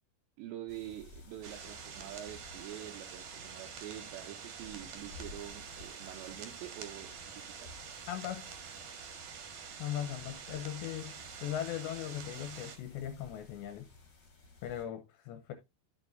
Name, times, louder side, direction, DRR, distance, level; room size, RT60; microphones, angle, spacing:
voice 1, 0.4-7.8, right 12 dB, 80° right, 2.6 m, -46 dB
sound 1, 0.7-14.8, left 3 dB, 35° left, 1.7 m, -56 dB
sound 2, 1.4-12.8, right 6 dB, 60° right, 2.3 m, -47 dB
voice 2, 8.1-8.5 9.8-13.9 14.6-15.5, left 11 dB, 80° left, 2.6 m, -39 dB
13.0 x 6.7 x 2.6 m
omnidirectional pair, 5.8 m